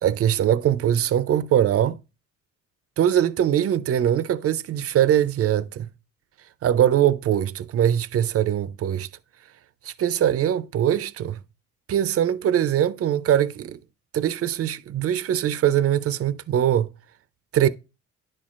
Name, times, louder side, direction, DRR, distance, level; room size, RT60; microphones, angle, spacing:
voice 1, 0.0-2.0 3.0-5.9 6.6-9.1 9.8-11.4 11.9-13.8 14.1-16.9 17.5-17.7, right 10 dB, 50° right, 0.5 m, -22 dB
10.0 x 4.3 x 2.5 m
cardioid pair, 90°, 30 cm